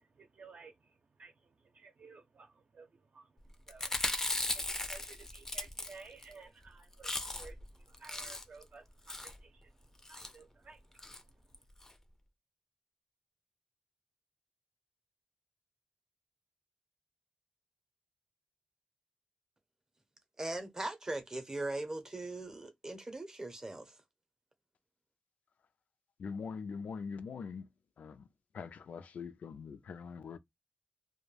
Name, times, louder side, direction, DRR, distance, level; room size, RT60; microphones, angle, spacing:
voice 1, 0.0-11.6, right 4 dB, 65° right, 0.6 m, -56 dB
Chewing mastication, 3.7-6.3 6.6-6.7 6.9-7.6 7.9-8.6 9.1-9.4 10.0-10.3 11.0-11.2 11.5-11.6 11.8-11.9, left 2 dB, 20° left, 0.4 m, -37 dB
voice 2, 20.4-23.9, right 2 dB, 25° right, 0.6 m, -40 dB
voice 3, 26.2-27.7 28.0-28.3 28.5-30.4, left 5 dB, 90° left, 0.3 m, -43 dB
2.3 x 2.1 x 3.2 m
wide cardioid pair, 105°, 2 cm